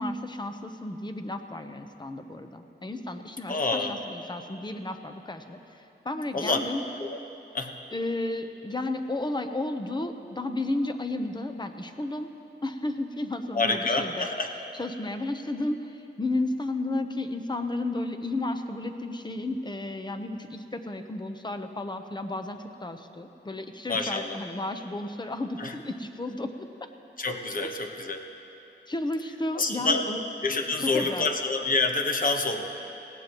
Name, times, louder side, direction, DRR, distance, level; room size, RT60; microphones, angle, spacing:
voice 1, 0.0-6.8 7.9-12.3 12.6-14.3 14.7-26.7 27.6-27.9 28.9-30.2 30.8-31.3, left 2 dB, 25° left, 7 dB, 0.8 m, -33 dB
voice 2, 3.5-4.0 6.3-6.6 7.0-7.2 7.5-7.7 13.5-14.5 23.9-24.4 25.6-25.7 27.2-28.2 29.5-30.0 30.4-32.7, left 3 dB, 45° left, 4 dB, 1.1 m, -27 dB
19.5 x 16.5 x 3.0 m, 2.9 s
wide cardioid pair, 100°, 19 cm